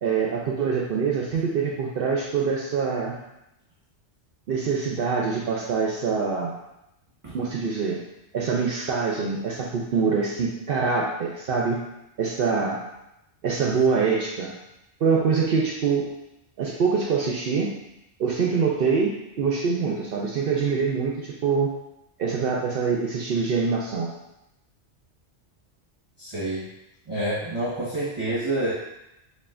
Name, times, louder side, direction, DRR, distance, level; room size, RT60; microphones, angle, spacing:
voice 1, 0.0-3.1 4.5-6.5 7.3-8.0 8.3-11.8 12.2-12.8 13.4-14.5 15.0-16.1 16.6-17.7 18.2-21.7 22.2-24.1, right 5 dB, 60° right, -2 dB, 0.7 m, -24 dB
voice 2, 26.2-26.7 27.1-28.7, right 1 dB, 25° right, -11 dB, 1.1 m, -28 dB
6.9 x 2.7 x 2.5 m, 0.87 s
omnidirectional pair, 1.2 m